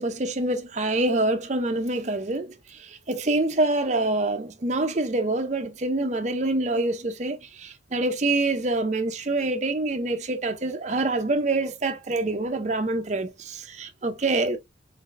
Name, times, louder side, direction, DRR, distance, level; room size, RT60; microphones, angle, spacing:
voice 1, 0.0-14.6, right 2 dB, 40° right, 0.6 m, -26 dB
4.1 x 3.8 x 2.5 m
head